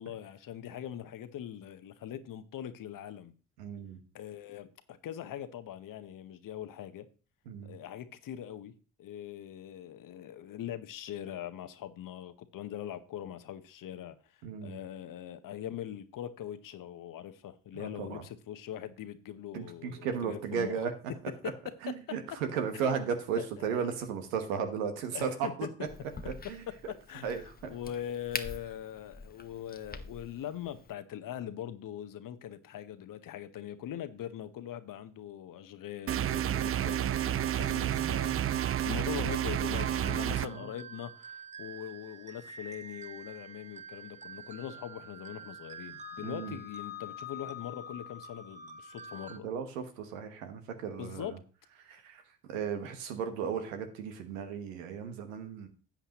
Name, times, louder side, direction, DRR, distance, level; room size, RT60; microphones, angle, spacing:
voice 1, 0.0-3.3 4.1-7.1 7.6-8.7 9.0-14.2 14.6-20.7 21.4-21.5 22.7-22.9 23.4-23.5 25.1-25.7 27.1-49.5 51.0-51.3, left 10 dB, 55° left, 1.0 m, -42 dB
voice 2, 3.6-4.0 7.4-7.8 14.4-14.8 17.7-18.2 19.5-20.9 21.8-25.7 26.2-27.7 37.7-38.6 40.4-40.7 46.2-46.6 49.3-51.4 51.8-55.7, right 7 dB, 85° right, 1.2 m, -36 dB
Crack, 25.9-30.9, left 4 dB, 25° left, 0.9 m, -45 dB
sound 1, 36.1-40.5, right 11 dB, 35° right, 0.4 m, -30 dB
sound 2, 37.7-38.1 38.5-49.4, right 1 dB, 20° right, 1.2 m, -46 dB
13.0 x 8.1 x 3.0 m
hypercardioid pair, 45°, 38 cm